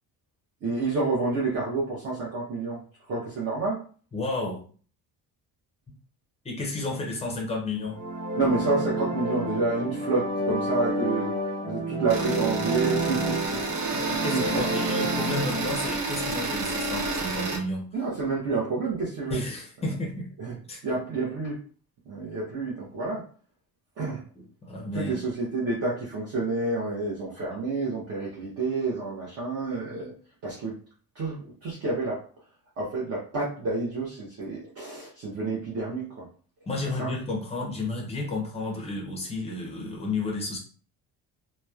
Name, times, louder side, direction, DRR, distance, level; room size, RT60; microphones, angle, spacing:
voice 1, 0.6-2.8 3.1-3.8 8.4-11.3 11.7-13.6 14.0-14.7 17.9-19.4 20.4-20.6 20.8-21.6 22.1-23.2 24.0-24.2 24.9-30.1 30.4-30.8 31.1-32.2 32.8-36.3 36.8-37.1, right 3 dB, 40° right, -6 dB, 0.7 m, -29 dB
voice 2, 4.1-4.6 6.4-8.0 13.9-17.9 19.3-20.3 20.7-20.8 24.4-25.3 36.7-40.6, left 2 dB, 15° left, 0 dB, 0.5 m, -32 dB
sound 1, 7.8-15.7, right 1 dB, 55° right, 1.2 m, -29 dB
sound 2, 12.1-17.6, right 3 dB, 75° right, 0.8 m, -30 dB
2.9 x 2.0 x 2.3 m, 0.41 s
cardioid pair, 180°, 38 cm